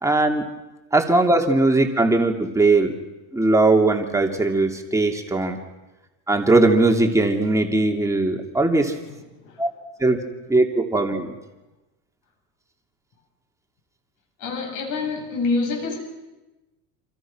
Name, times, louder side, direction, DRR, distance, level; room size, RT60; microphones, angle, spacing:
voice 1, 0.0-0.4 0.9-2.9 3.3-5.6 6.3-8.9 9.6-9.7 10.0-10.2 10.5-11.3, right 2 dB, 10° right, 3 dB, 2.8 m, -19 dB
voice 2, 14.4-16.0, left 3 dB, 50° left, 3 dB, 7.9 m, -26 dB
28.5 x 27.5 x 6.2 m, 1.1 s
cardioid pair, 155°, 40 cm